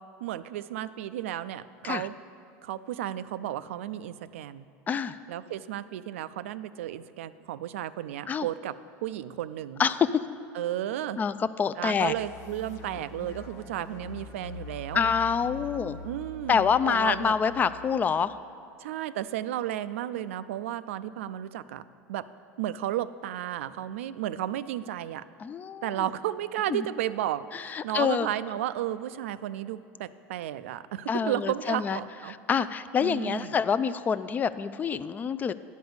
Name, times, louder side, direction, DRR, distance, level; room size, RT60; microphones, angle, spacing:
voice 1, 0.2-2.1 2.6-4.6 5.3-8.8 9.0-9.8 10.5-11.2 11.8-15.1 16.0-17.3 18.8-21.8 22.1-22.3 22.6-25.2 25.8-32.3 33.0-33.6, right 12 dB, 90° right, 14 dB, 0.3 m, -33 dB
voice 2, 4.9-5.2 8.3-8.5 9.8-10.1 11.2-12.1 14.9-16.0 16.5-18.3 25.4-26.0 26.7-26.8 27.5-28.3 31.1-32.0 32.5-35.5, left 6 dB, 25° left, 14 dB, 0.3 m, -26 dB
sound 1, 11.8-18.1, left 2 dB, 50° left, 1.0 m, -44 dB
10.5 x 5.1 x 7.9 m, 2.4 s
supercardioid pair, 110°, 7 cm